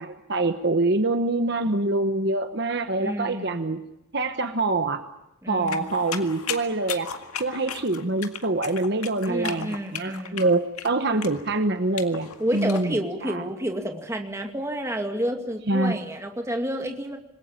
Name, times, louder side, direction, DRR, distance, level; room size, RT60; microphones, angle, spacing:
voice 1, 0.0-3.8 4.1-5.0 5.5-7.1 7.4-13.4 15.7-16.0, right 2 dB, 50° right, 8 dB, 1.0 m, -25 dB
voice 2, 3.0-3.6 5.4-5.9 9.2-10.4 12.4-17.2, equal, 15° right, 3 dB, 2.3 m, -30 dB
sound 1, 5.7-12.8, left 7 dB, 85° left, 2.0 m, -36 dB
26.5 x 20.5 x 8.9 m, 0.91 s
head